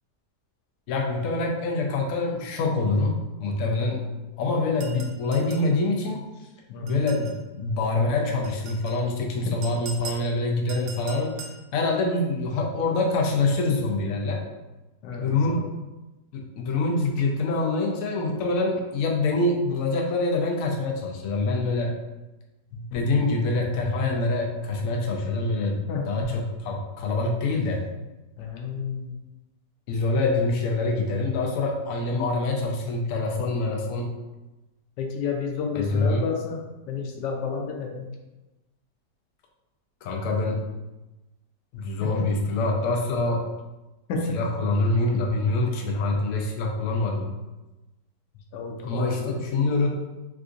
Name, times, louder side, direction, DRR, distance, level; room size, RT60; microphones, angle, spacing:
voice 1, 0.9-4.1 4.4-6.2 6.8-11.4 11.7-14.4 15.2-15.6 16.3-21.9 22.7-25.8 26.1-27.8 29.9-34.1 35.7-36.2 40.0-40.6 41.7-43.4 44.3-47.3 48.8-49.9, left 2 dB, 70° left, 0 dB, 0.8 m, -25 dB
sound 1, 4.8-5.7 6.9-7.4 8.4-9.0 9.6-10.3 10.7-11.6, right 4 dB, 70° right, 0.9 m, -41 dB
voice 2, 15.0-15.6 22.9-23.2 25.9-26.1 28.4-29.1 35.0-36.6 36.9-38.1 42.0-42.3 44.1-44.4 48.5-49.5, left 5 dB, 85° left, 2 dB, 1.2 m, -31 dB
3.6 x 2.5 x 2.4 m, 1.1 s
omnidirectional pair, 1.8 m